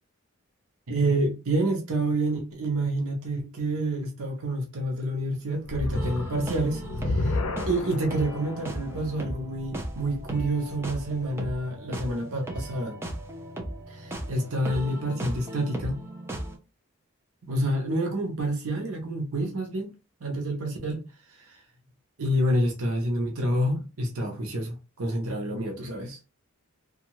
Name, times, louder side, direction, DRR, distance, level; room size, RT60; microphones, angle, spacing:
voice 1, 0.9-7.4 7.6-13.0 13.9-16.0 17.5-19.9 20.2-21.0 21.4-21.6 22.2-26.2, right 1 dB, 85° right, 0.8 m, -28 dB
sound 1, 5.6-10.9, left 2 dB, 70° left, 0.5 m, -33 dB
sound 2, 5.9-16.6, right 1 dB, 10° right, 0.5 m, -37 dB
2.7 x 2.3 x 3.0 m
head